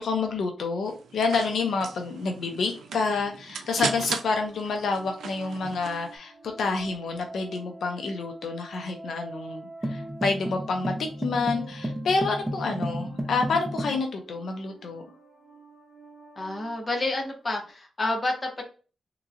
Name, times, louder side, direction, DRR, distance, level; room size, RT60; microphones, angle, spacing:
voice 1, 0.0-10.9 11.2-15.1, left 4 dB, 70° left, 4 dB, 0.6 m, -28 dB
sound 1, 0.9-6.1, right 6 dB, 90° right, 0.5 m, -37 dB
sound 2, 2.3-17.7, right 2 dB, 20° right, 2.0 m, -48 dB
sound 3, 9.8-14.0, equal, 5° right, 0.5 m, -32 dB
voice 2, 16.4-18.6, left 2 dB, 25° left, 1 dB, 0.9 m, -29 dB
3.7 x 3.0 x 2.5 m, 0.35 s
wide cardioid pair, 150°, 0 cm